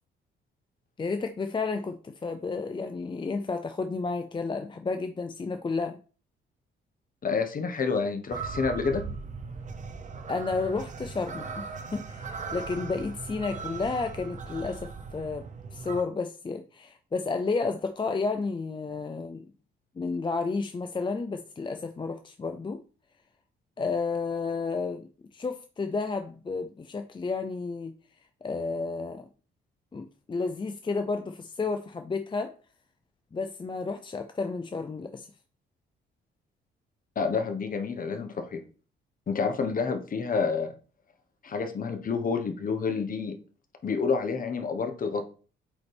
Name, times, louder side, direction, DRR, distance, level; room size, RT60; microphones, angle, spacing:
voice 1, 1.0-6.0 10.3-15.5 15.7-19.5 20.0-22.8 23.8-27.9 28.4-29.3 29.9-32.6 33.3-35.3, left 4 dB, 25° left, 7 dB, 0.6 m, -31 dB
voice 2, 7.2-9.1 37.1-38.6 39.3-40.7 41.4-43.4 43.8-45.3, left 5 dB, 45° left, 7 dB, 1.3 m, -29 dB
sound 1, 8.3-16.0, right 5 dB, 40° right, 0.9 m, -38 dB
8.4 x 4.1 x 3.5 m, 0.37 s
cardioid pair, 90°, 20 cm